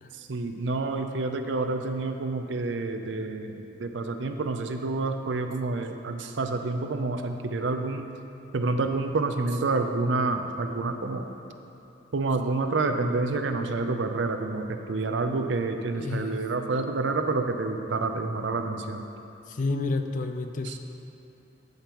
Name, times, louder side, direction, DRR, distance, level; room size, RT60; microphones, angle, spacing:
voice 1, 0.1-8.1 8.5-11.3 12.1-19.0 20.6-20.8, right 3 dB, 75° right, 6 dB, 0.5 m, -28 dB
voice 2, 15.9-16.4 19.5-20.8, left 3 dB, 40° left, 7 dB, 0.4 m, -30 dB
14.5 x 5.2 x 3.0 m, 2.8 s
head